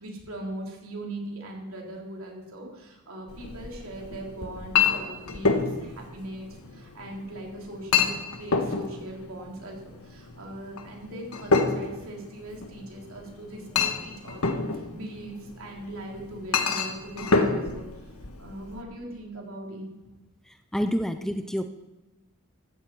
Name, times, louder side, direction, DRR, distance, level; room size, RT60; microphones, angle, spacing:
voice 1, 0.0-18.1 18.4-19.9, right 1 dB, 65° right, -1 dB, 3.5 m, -40 dB
Chink clink, 3.3-18.8, left 4 dB, 75° left, 1.4 m, -29 dB
voice 2, 20.5-21.7, equal, ahead, 8 dB, 0.4 m, -28 dB
15.5 x 13.5 x 4.7 m, 1.1 s
head